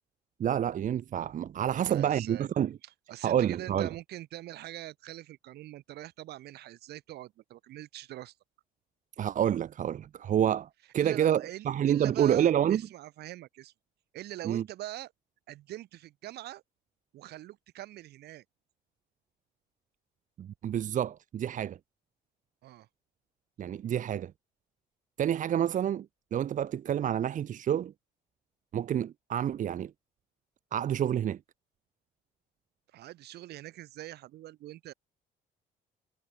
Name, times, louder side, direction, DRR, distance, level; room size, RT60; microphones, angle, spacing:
voice 1, 0.4-2.8 3.2-3.9 9.2-12.8 14.4-14.6 20.4-21.8 23.6-24.3 25.2-26.1 26.3-27.9 28.7-29.9 30.7-31.4, right 10 dB, 50° right, 1.2 m, -28 dB
voice 2, 1.7-2.5 2.8-8.3 11.0-13.7 14.1-15.1 15.5-16.6 17.1-18.4 22.6-22.9 32.9-34.9, right 15 dB, 75° right, 7.6 m, -43 dB
cardioid pair, 110°, 17 cm